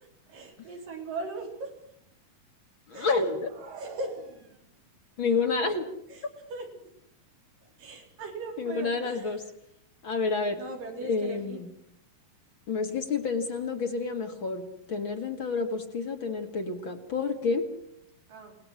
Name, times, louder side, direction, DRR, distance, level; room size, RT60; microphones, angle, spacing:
voice 1, 0.3-1.7 2.9-3.3 3.7-4.6 6.1-6.9 7.6-9.5 10.6-11.6 18.3-18.6, right 2 dB, 90° right, 1 dB, 5.5 m, -39 dB
voice 2, 2.9-3.5 5.2-5.9 8.6-9.4 10.0-10.6 11.1-11.7 12.7-14.6 14.9-17.6, left 4 dB, 40° left, 5 dB, 2.4 m, -29 dB
sound 1, 3.3-4.9, right 4 dB, 40° right, 2.8 m, -46 dB
29.5 x 19.5 x 6.3 m, 0.73 s
omnidirectional pair, 3.8 m